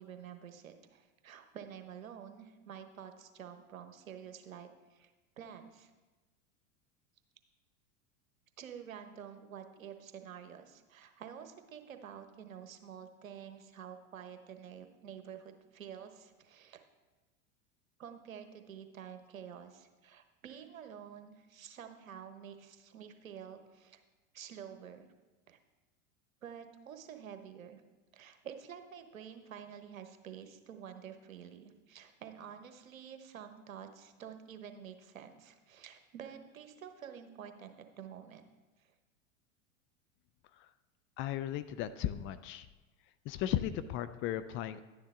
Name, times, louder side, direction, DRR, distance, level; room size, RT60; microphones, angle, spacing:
voice 1, 0.0-5.1 5.4-5.9 8.6-16.8 18.0-24.0 24.3-25.1 25.5-25.6 26.4-27.8 28.1-38.4, right 8 dB, 80° right, 7 dB, 1.1 m, -49 dB
voice 2, 41.2-42.7 43.3-44.9, left 12 dB, 30° left, 13 dB, 0.4 m, -36 dB
11.0 x 9.4 x 3.7 m, 1.2 s
hypercardioid pair, 95°, 40 cm